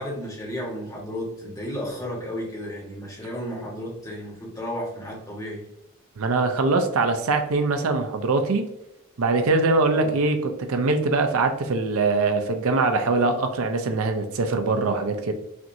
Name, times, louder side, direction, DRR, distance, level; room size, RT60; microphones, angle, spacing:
voice 1, 0.0-5.6 9.9-10.1, equal, 15° left, -3 dB, 1.3 m, -33 dB
voice 2, 6.2-8.7 9.2-15.3, right 3 dB, 70° right, 6 dB, 0.5 m, -22 dB
5.9 x 2.6 x 2.6 m, 0.92 s
head